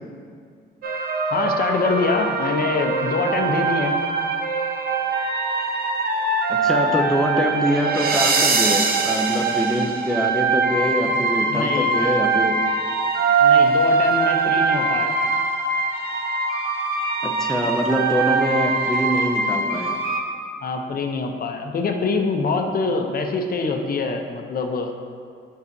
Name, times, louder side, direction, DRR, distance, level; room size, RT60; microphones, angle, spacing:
sound 1, 0.8-20.2, right 4 dB, 50° right, 0.8 m, -22 dB
voice 1, 1.3-4.0 11.5-11.9 13.4-15.2 20.6-24.9, left 3 dB, 50° left, 4 dB, 0.7 m, -24 dB
voice 2, 6.5-12.7 17.2-20.0, equal, ahead, 2 dB, 0.5 m, -24 dB
8.0 x 5.6 x 2.7 m, 2.2 s
cardioid pair, 90°, 20 cm